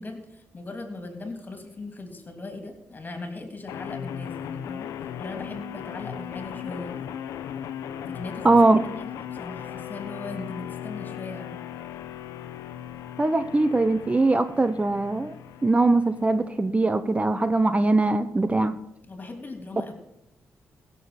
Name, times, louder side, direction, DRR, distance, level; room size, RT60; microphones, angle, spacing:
voice 1, 0.0-4.9 5.2-7.1 8.1-8.6 9.0-11.6 19.0-19.9, left 2 dB, 35° left, 5 dB, 3.2 m, -38 dB
sound 1, 3.7-16.7, left 9 dB, 90° left, 0.7 m, -37 dB
voice 2, 8.4-8.8 13.2-15.3 15.6-18.8, right 2 dB, 25° right, 11 dB, 0.7 m, -21 dB
16.0 x 7.0 x 5.9 m, 0.84 s
supercardioid pair, 60°, 5 cm